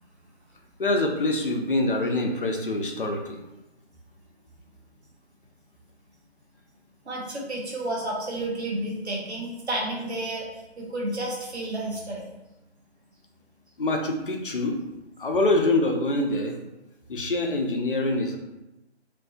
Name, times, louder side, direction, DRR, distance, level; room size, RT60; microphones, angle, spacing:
voice 1, 0.8-3.4 13.8-14.8 15.2-16.5 17.1-18.4, left 2 dB, 55° left, 3 dB, 0.5 m, -25 dB
voice 2, 7.0-12.2, right 1 dB, 75° right, -2 dB, 0.9 m, -31 dB
2.6 x 2.5 x 2.3 m, 0.95 s
figure-of-eight pair, 150°, 33 cm